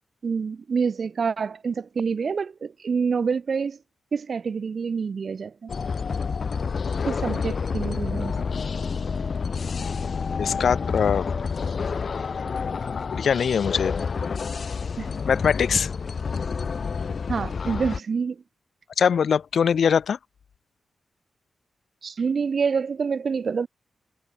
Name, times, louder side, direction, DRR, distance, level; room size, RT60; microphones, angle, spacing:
voice 1, 0.2-3.8 4.1-5.7 7.1-8.4 15.0-15.1 17.3-18.4 22.0-23.7, right 5 dB, 60° right, 0.9 m, -27 dB
sound 1, 5.7-18.0, left 5 dB, 55° left, 1.1 m, -29 dB
voice 2, 10.4-11.2 13.2-13.9 15.3-15.9 19.0-20.2, left 7 dB, 75° left, 0.7 m, -22 dB
cardioid pair, 90°, 0 cm